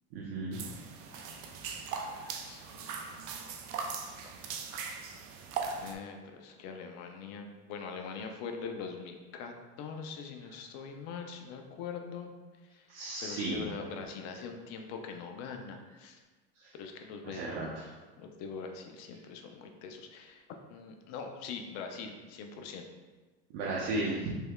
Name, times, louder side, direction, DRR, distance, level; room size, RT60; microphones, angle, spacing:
voice 1, 0.1-0.7 12.9-13.8 16.6-16.7 17.2-17.9 23.5-24.3, right 2 dB, 70° right, -6 dB, 0.8 m, -35 dB
sound 1, 0.5-5.9, right 5 dB, 50° right, 0.4 m, -39 dB
voice 2, 1.1-3.1 3.8-4.2 5.8-12.3 12.7-12.9 13.2-16.2 16.7-17.7 18.2-22.9, left 5 dB, 60° left, 4 dB, 0.5 m, -43 dB
3.3 x 3.1 x 2.3 m, 1.3 s
supercardioid pair, 130°, 30 cm